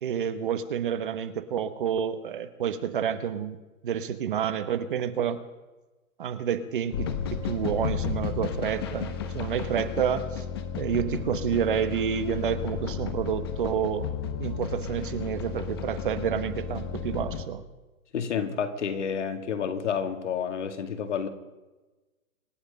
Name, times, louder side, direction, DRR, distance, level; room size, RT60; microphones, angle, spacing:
voice 1, 0.0-3.6 3.8-5.4 6.2-10.4 10.8-14.1 14.4-17.6, right 8 dB, 40° right, 11 dB, 1.2 m, -29 dB
sound 1, 6.9-17.4, left 7 dB, 20° left, 0.8 m, -33 dB
voice 2, 18.1-21.3, left 7 dB, 55° left, 7 dB, 2.3 m, -30 dB
25.5 x 9.9 x 5.4 m, 1.1 s
hypercardioid pair, 165°, 41 cm